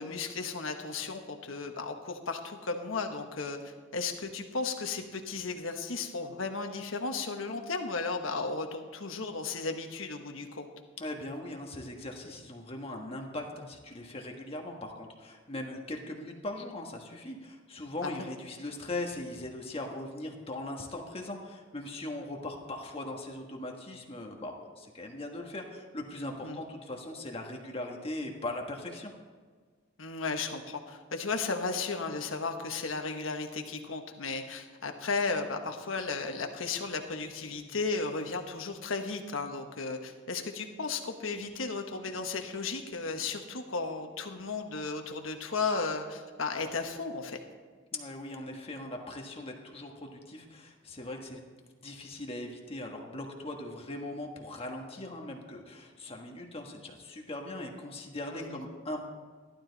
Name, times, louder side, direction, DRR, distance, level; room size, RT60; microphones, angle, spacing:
voice 1, 0.0-10.7 18.0-18.2 26.4-26.6 30.0-47.4 58.3-58.6, left 4 dB, 85° left, 5 dB, 1.3 m, -35 dB
voice 2, 11.0-29.1 47.9-51.4 51.8-59.0, left 1 dB, 30° left, 1 dB, 1.4 m, -40 dB
14.5 x 12.0 x 4.0 m, 1.5 s
head